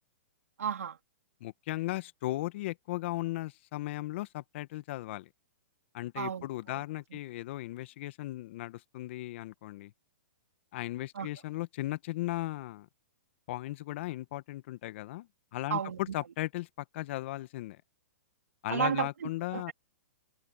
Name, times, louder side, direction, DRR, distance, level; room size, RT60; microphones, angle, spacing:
voice 1, 0.6-1.0 6.2-6.8 11.1-11.3 15.7-16.0 18.7-19.7, right 8 dB, 80° right, 3.1 m, -33 dB
voice 2, 1.4-5.3 5.9-9.9 10.7-12.9 13.5-17.8 18.6-19.7, left 17 dB, 50° left, 1.4 m, -37 dB
open air
hypercardioid pair, 130°, 8 cm